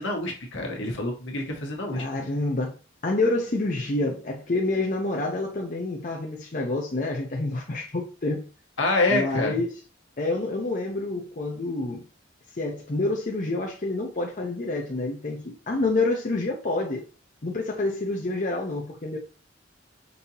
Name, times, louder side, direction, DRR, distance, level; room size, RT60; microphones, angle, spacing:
voice 1, 0.0-2.0 8.8-9.6, left 2 dB, 75° left, 1.2 m, -26 dB
voice 2, 1.9-2.8 3.0-8.4 9.1-9.8 10.2-12.0 12.6-17.0 17.4-19.2, left 2 dB, 40° left, 0.7 m, -28 dB
5.4 x 2.8 x 2.7 m
head